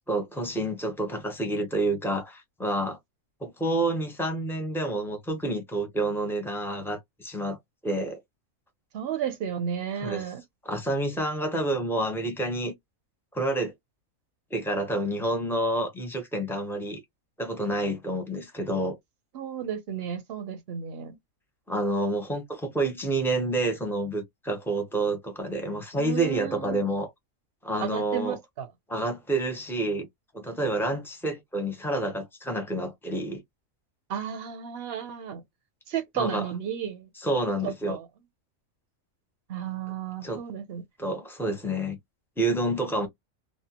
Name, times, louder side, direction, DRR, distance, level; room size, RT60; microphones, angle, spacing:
voice 1, 0.1-3.0 3.4-7.6 7.8-8.2 10.0-10.2 10.6-12.7 13.3-13.7 14.5-17.0 17.4-19.0 21.7-27.1 27.6-28.4 28.9-30.1 30.3-33.4 36.2-36.4 37.2-38.0 40.2-40.4 41.0-42.0 42.4-43.1, right 1 dB, 5° left, 0.5 m, -28 dB
voice 2, 8.9-10.4 19.3-21.2 26.0-26.9 27.8-28.7 34.1-35.4 35.9-37.1 37.6-38.1 39.5-40.8, right 8 dB, 55° right, 0.8 m, -33 dB
2.7 x 2.1 x 2.8 m
omnidirectional pair, 1.4 m